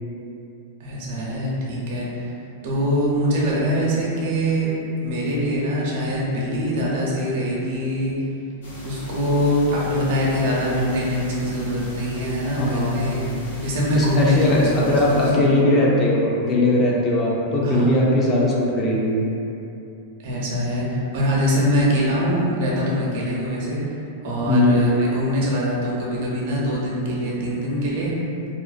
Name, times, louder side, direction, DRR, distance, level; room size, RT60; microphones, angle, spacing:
voice 1, 0.8-2.3 2.6-4.7 5.0-8.1 8.8-13.2 13.6-15.6 17.6-18.0 20.2-23.8 24.2-28.1, equal, 60° right, -5 dB, 0.6 m, -23 dB
sound 1, 8.6-15.3, equal, 85° left, 0.5 m, -35 dB
voice 2, 12.6-13.1 13.9-19.2 24.5-24.9, left 1 dB, 30° left, -4 dB, 0.4 m, -19 dB
2.3 x 2.1 x 2.4 m, 2.8 s
hypercardioid pair, 110°, 0 cm